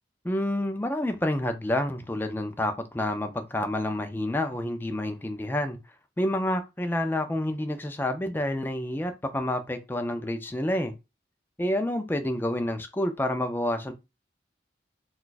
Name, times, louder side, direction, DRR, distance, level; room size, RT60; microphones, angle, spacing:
voice 1, 0.2-5.8 6.2-10.9 11.6-13.9, left 1 dB, 10° left, 0.3 m, -28 dB
2.4 x 2.3 x 3.8 m
head